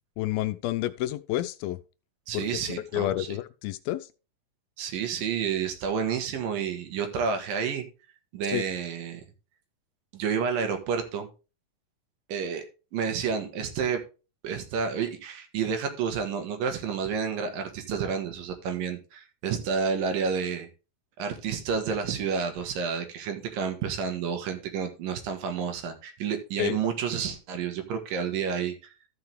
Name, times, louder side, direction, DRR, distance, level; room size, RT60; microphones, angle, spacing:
voice 1, 0.2-1.8 2.3-4.1 8.4-8.7 26.6-26.8, left 14 dB, 85° left, 2.4 m, -30 dB
voice 2, 2.3-3.3 4.8-7.9 8.3-9.2 10.1-11.3 12.3-12.6 12.9-14.0 14.4-20.7 21.2-28.7, right 6 dB, 75° right, 3.0 m, -30 dB
13.5 x 5.8 x 3.4 m
omnidirectional pair, 4.2 m